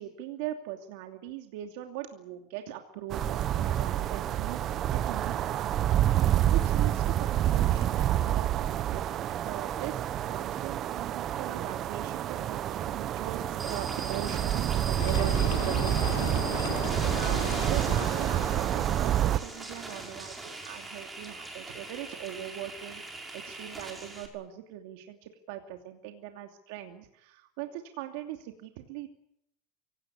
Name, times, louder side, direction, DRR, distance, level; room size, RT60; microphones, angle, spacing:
voice 1, 0.0-5.8 6.5-9.0 9.4-29.1, right 12 dB, 75° right, 5 dB, 2.8 m, -40 dB
sound 1, 3.1-19.4, right 11 dB, 40° right, 0.9 m, -28 dB
sound 2, 13.6-24.3, right 2 dB, 15° right, 5.5 m, -41 dB
sound 3, 15.0-19.0, left 10 dB, 80° left, 3.6 m, -37 dB
24.5 x 18.0 x 9.9 m, 0.73 s
supercardioid pair, 140°, 0 cm